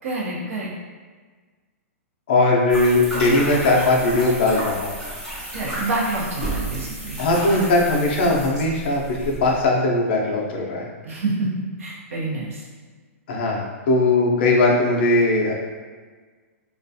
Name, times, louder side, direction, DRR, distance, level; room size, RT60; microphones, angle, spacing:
voice 1, 0.0-0.7 5.5-7.2 11.0-11.5 11.8-12.7, right 2 dB, 70° right, -4 dB, 0.8 m, -27 dB
voice 2, 2.3-5.0 7.2-10.9 13.3-15.5, left 2 dB, 40° left, -2 dB, 0.4 m, -19 dB
sound 1, 2.7-9.7, right 1 dB, 20° right, 1.0 m, -32 dB
2.3 x 2.2 x 2.6 m, 1.5 s
hypercardioid pair, 170°, 8 cm